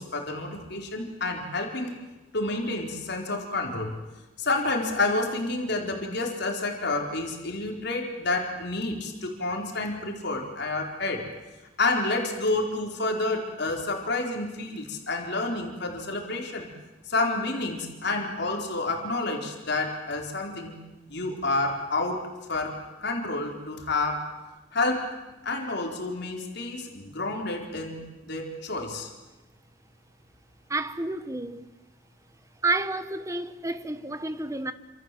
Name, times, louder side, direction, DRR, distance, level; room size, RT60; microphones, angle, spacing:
voice 1, 0.0-2.0 2.3-4.0 4.4-11.3 11.8-16.7 17.1-20.8 21.1-24.3 24.7-25.1 25.4-29.1, left 2 dB, 60° left, 4.3 m, -29 dB
voice 2, 30.7-31.7 32.6-34.7, right 2 dB, 15° right, 1.3 m, -30 dB
28.0 x 27.0 x 7.7 m
head